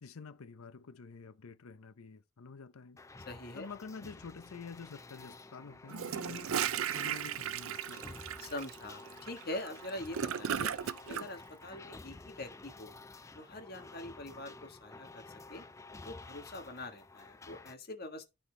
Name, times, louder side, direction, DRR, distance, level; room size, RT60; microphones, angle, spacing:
voice 1, 0.0-3.0 3.5-6.5 6.9-8.1, left 5 dB, 90° left, 0.7 m, -48 dB
sound 1, 3.0-17.7, left 3 dB, 15° left, 0.4 m, -51 dB
voice 2, 3.3-3.7 8.4-10.7 11.1-12.9 13.3-15.2 15.5-15.7 16.0-18.3, left 1 dB, 45° left, 1.5 m, -44 dB
Gurgling / Toilet flush, 5.9-11.3, right 9 dB, 75° right, 0.5 m, -36 dB
13.0 x 4.3 x 3.3 m
head